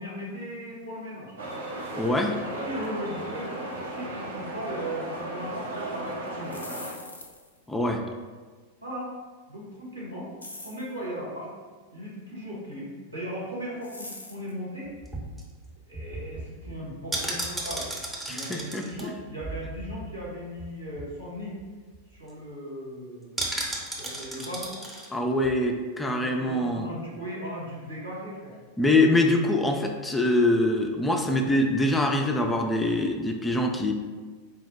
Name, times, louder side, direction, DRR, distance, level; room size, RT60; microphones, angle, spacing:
voice 1, 0.0-1.3 2.6-6.6 8.8-9.1 9.5-10.3 10.6-11.5 11.9-14.9 15.9-17.9 18.3-21.6 22.1-24.8 26.2-28.6, equal, 90° right, -6 dB, 1.4 m, -37 dB
sound 1, 1.4-6.9, right 1 dB, 70° right, 0.7 m, -35 dB
voice 2, 1.9-2.4 7.7-8.0 18.3-19.1 25.1-26.9 28.8-33.9, left 1 dB, 10° left, 3 dB, 0.4 m, -24 dB
sound 2, 6.5-7.6 10.4-10.9 13.8-14.5, left 2 dB, 80° left, 0.4 m, -42 dB
sound 3, 14.9-20.3 20.6-20.7 20.9-21.2 21.6-21.7 21.9-22.3 23.4-25.1 25.4-25.5, right 1 dB, 10° right, 0.8 m, -35 dB
4.3 x 2.1 x 4.3 m, 1.4 s
figure-of-eight pair, 90°, 0 cm